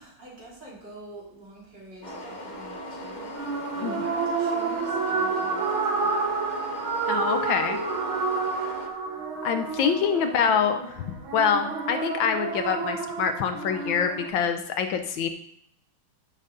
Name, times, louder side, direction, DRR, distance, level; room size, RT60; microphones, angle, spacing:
voice 1, 0.0-3.4 3.7-6.4 9.8-10.4, right 2 dB, 55° right, -5 dB, 3.7 m, -46 dB
sound 1, 2.0-8.9, equal, 35° left, 0.8 m, -39 dB
sound 2, 3.3-14.3, right 4 dB, 75° right, 2.1 m, -29 dB
voice 2, 7.1-7.8 9.4-15.3, left 7 dB, 75° left, 8 dB, 1.4 m, -25 dB
10.0 x 6.4 x 3.8 m, 0.70 s
omnidirectional pair, 2.3 m